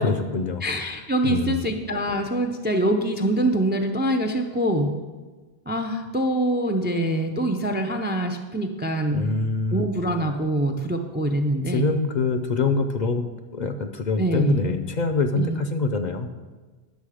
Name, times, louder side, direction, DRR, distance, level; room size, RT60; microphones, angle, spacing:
voice 1, 0.0-0.6 1.2-1.6 9.1-9.9 11.7-13.3 13.5-16.3, left 4 dB, 50° left, 7 dB, 0.7 m, -24 dB
voice 2, 0.6-4.9 5.7-9.3 9.7-12.0 14.2-14.6 15.3-15.6, right 1 dB, 15° right, 5 dB, 0.4 m, -24 dB
10.5 x 6.6 x 4.9 m, 1.3 s
omnidirectional pair, 1.0 m